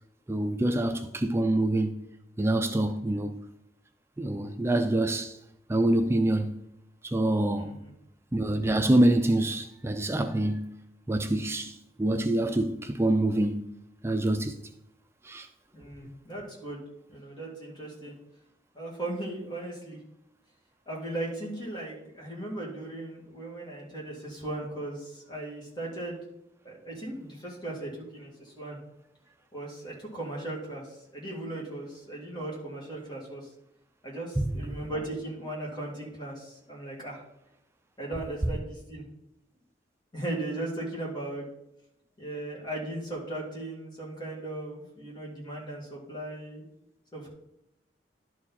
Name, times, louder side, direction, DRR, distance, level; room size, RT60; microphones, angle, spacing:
voice 1, 0.3-2.1 2.4-3.3 4.2-5.4 5.7-6.6 7.0-7.7 8.3-10.7 11.1-13.7 14.0-14.6 15.2-15.5 34.4-34.5, right 1 dB, 15° right, 0.4 m, -26 dB
voice 2, 7.5-7.9 15.7-16.8 17.1-18.1 18.7-20.0 20.9-26.3 26.6-28.8 29.5-33.5 34.0-37.2 38.0-39.0 40.1-41.5 42.2-46.6 47.1-47.3, right 1 dB, 25° left, 2.3 m, -37 dB
11.5 x 4.7 x 4.2 m
head